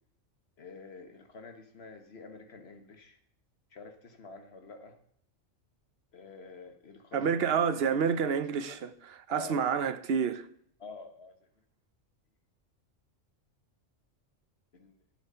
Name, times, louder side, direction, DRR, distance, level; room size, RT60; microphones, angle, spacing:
voice 1, 0.6-3.2 3.7-5.0 6.1-8.4 8.6-8.8 9.3-9.7 10.8-11.3 14.7-15.0, left 3 dB, 55° left, 1.5 m, -48 dB
voice 2, 7.1-10.4, right 6 dB, 55° right, 0.9 m, -29 dB
10.5 x 8.2 x 5.5 m
omnidirectional pair, 1.3 m